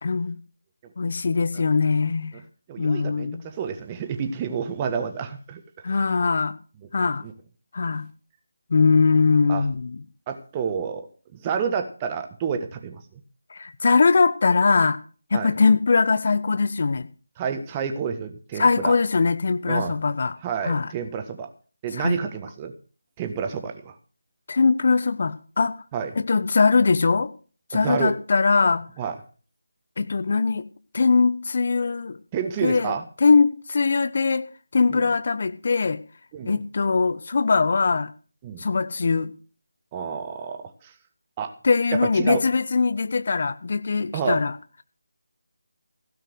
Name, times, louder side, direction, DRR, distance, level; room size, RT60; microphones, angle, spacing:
voice 1, 0.0-0.4 1.0-2.3 2.8-3.4 5.8-6.5 6.9-7.2 7.7-8.1 8.7-10.0 13.5-15.0 15.3-17.1 18.6-20.4 20.6-20.9 22.0-22.2 24.5-25.8 26.2-27.3 27.7-28.8 30.0-30.6 30.9-32.2 32.6-32.9 33.2-34.5 34.7-36.0 36.4-38.1 38.6-39.3 41.6-44.5, left 4 dB, 50° left, 12 dB, 1.1 m, -21 dB
voice 2, 2.7-6.0 7.2-7.3 9.5-9.6 10.3-11.1 11.3-13.0 15.3-15.5 17.4-18.9 19.7-19.9 20.4-21.5 21.8-22.7 23.2-23.9 25.9-26.1 27.7-28.1 29.0-29.2 32.3-33.0 34.9-35.0 36.3-36.6 38.4-38.7 39.9-40.9 41.4-41.5 41.9-42.4 44.1-44.4, right 6 dB, 20° right, 6 dB, 1.5 m, -29 dB
16.0 x 5.7 x 7.9 m, 0.39 s
figure-of-eight pair, 160°, 0 cm